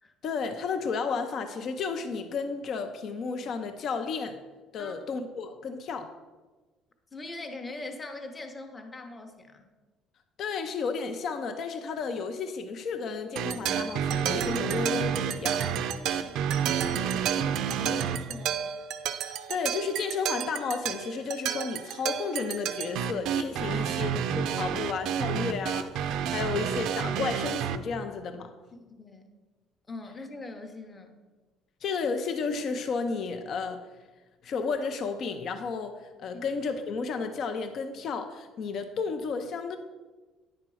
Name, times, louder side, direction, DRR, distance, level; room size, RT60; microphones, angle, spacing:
voice 1, 0.2-4.4 4.7-6.1 10.4-15.6 19.2-28.5 31.8-33.8 34.4-39.8, left 5 dB, 50° left, 0.6 m, -32 dB
voice 2, 7.1-9.7 16.2-18.7 23.7-24.0 28.8-29.2 29.9-31.2 36.3-36.4, left 2 dB, 20° left, 0.9 m, -42 dB
sound 1, 13.4-27.8, right 8 dB, 70° right, 0.5 m, -30 dB
9.7 x 4.4 x 6.2 m
cardioid pair, 140°, 0 cm